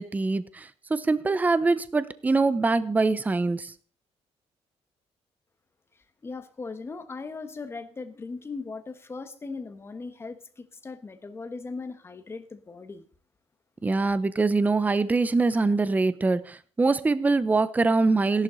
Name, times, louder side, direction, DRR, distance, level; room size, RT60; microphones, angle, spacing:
voice 1, 0.0-3.7 13.8-18.4, right 3 dB, 15° right, 0.6 m, -24 dB
voice 2, 6.2-13.0, left 4 dB, 20° left, 1.4 m, -38 dB
16.5 x 11.5 x 4.0 m
cardioid pair, 150°, 11 cm